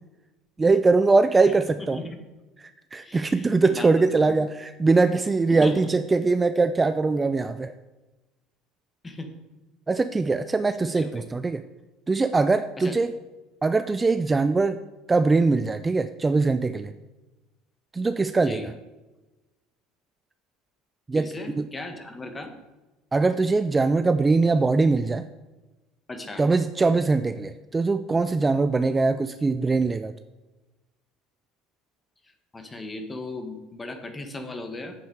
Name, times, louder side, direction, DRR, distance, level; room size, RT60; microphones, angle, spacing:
voice 1, 0.6-2.0 2.6-7.7 9.9-11.6 12.1-13.2 13.6-14.8 15.1-16.9 17.9-18.7 21.1-21.7 23.1-25.3 26.4-30.1, right 3 dB, 20° right, 11 dB, 0.4 m, -22 dB
voice 2, 1.8-2.2 3.0-3.9 4.3-4.4 5.5-5.7 9.0-9.3 11.0-11.2 12.8-12.9 18.5-18.7 21.1-22.5 26.1-26.5 32.5-34.9, left 2 dB, 20° left, 6 dB, 1.5 m, -36 dB
8.6 x 7.4 x 4.9 m, 1.1 s
hypercardioid pair, 80°, 0 cm